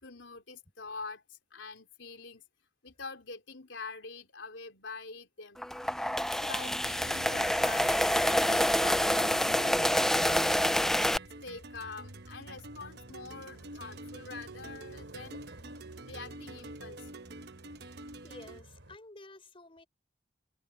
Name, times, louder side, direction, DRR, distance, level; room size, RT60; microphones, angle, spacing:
voice 1, 0.0-2.4 2.8-10.8 11.4-15.4 16.0-17.3, left 4 dB, 75° left, 3.7 m, -46 dB
sound 1, 5.6-11.2, left 1 dB, ahead, 0.3 m, -27 dB
sound 2, 6.6-18.6, right 2 dB, 60° right, 1.0 m, -48 dB
sound 3, 6.9-19.0, right 1 dB, 85° right, 3.9 m, -53 dB
voice 2, 18.0-19.9, left 2 dB, 30° left, 5.4 m, -52 dB
head